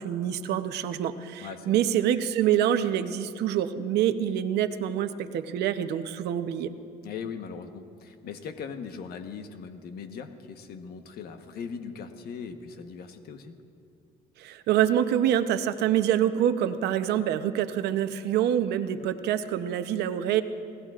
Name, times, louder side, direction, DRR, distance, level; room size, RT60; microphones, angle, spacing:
voice 1, 0.0-6.7 14.4-20.4, right 10 dB, 80° right, 10 dB, 0.8 m, -26 dB
voice 2, 1.4-1.8 7.0-13.5, left 6 dB, 65° left, 7 dB, 1.2 m, -39 dB
27.0 x 18.0 x 2.5 m, 2.5 s
cardioid pair, 110°, 17 cm